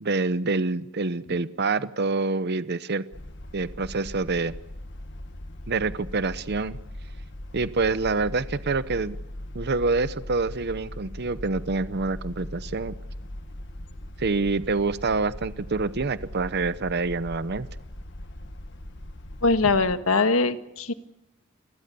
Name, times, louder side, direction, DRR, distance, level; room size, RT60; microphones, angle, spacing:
voice 1, 0.0-3.0 3.5-4.5 5.7-6.8 7.5-9.2 9.5-12.9 14.2-17.7, right 3 dB, 50° right, 14 dB, 0.8 m, -26 dB
sound 1, 3.1-20.0, left 1 dB, 55° left, 1.7 m, -40 dB
voice 2, 19.4-20.9, left 3 dB, 85° left, 9 dB, 1.6 m, -22 dB
28.0 x 20.5 x 6.9 m, 0.87 s
head